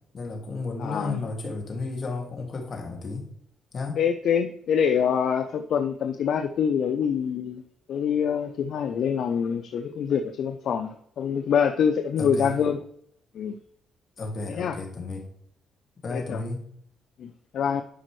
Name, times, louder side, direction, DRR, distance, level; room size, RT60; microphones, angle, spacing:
voice 1, 0.1-3.2 3.7-4.0 12.2-12.6 14.2-15.3 16.0-16.7, left 3 dB, 45° left, 2 dB, 2.3 m, -33 dB
voice 2, 0.8-1.2 4.0-7.6 7.9-12.8 13.3-13.6 14.5-14.8 16.1-16.4 17.2-17.8, left 7 dB, 65° left, 7 dB, 0.6 m, -25 dB
11.5 x 5.2 x 3.2 m, 0.67 s
cardioid pair, 90°, 0 cm